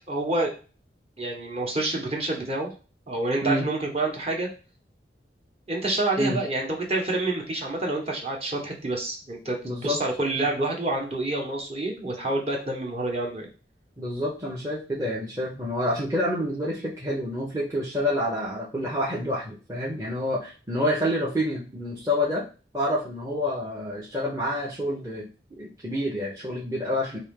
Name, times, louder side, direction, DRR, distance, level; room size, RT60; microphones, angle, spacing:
voice 1, 0.1-0.5 1.2-2.7 3.1-4.5 5.7-13.5, right 2 dB, 35° right, 0 dB, 1.3 m, -28 dB
voice 2, 9.6-10.0 10.3-10.5 14.0-22.4 22.7-25.3 25.6-27.2, left 1 dB, 15° right, -5 dB, 0.9 m, -28 dB
5.0 x 2.8 x 3.7 m, 0.34 s
head